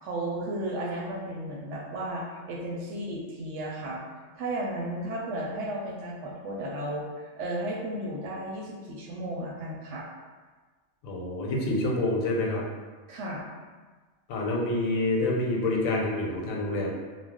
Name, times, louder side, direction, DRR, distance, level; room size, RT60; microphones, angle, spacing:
voice 1, 0.0-4.0 4.3-10.1 13.1-13.5, right 1 dB, 70° right, -2 dB, 0.8 m, -34 dB
voice 2, 11.0-12.6 14.3-16.9, left 2 dB, 90° left, -2 dB, 1.0 m, -27 dB
2.4 x 2.1 x 3.5 m, 1.4 s
omnidirectional pair, 1.4 m